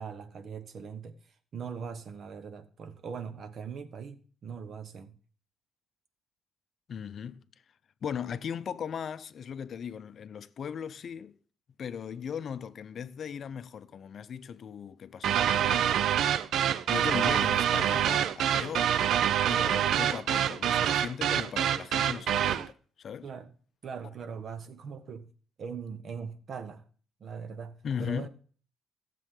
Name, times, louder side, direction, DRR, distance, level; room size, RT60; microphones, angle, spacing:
voice 1, 0.0-5.2 23.2-23.5 23.8-25.3 25.6-26.8 27.2-28.3, right 6 dB, 50° right, 1.2 m, -41 dB
voice 2, 6.9-7.4 8.0-11.3 11.8-15.9 16.9-18.9 19.5-23.3 27.8-28.3, left 7 dB, 50° left, 0.6 m, -38 dB
sound 1, 15.2-22.7, right 10 dB, 65° right, 0.5 m, -26 dB
15.0 x 7.6 x 3.8 m
cardioid pair, 120°, 0 cm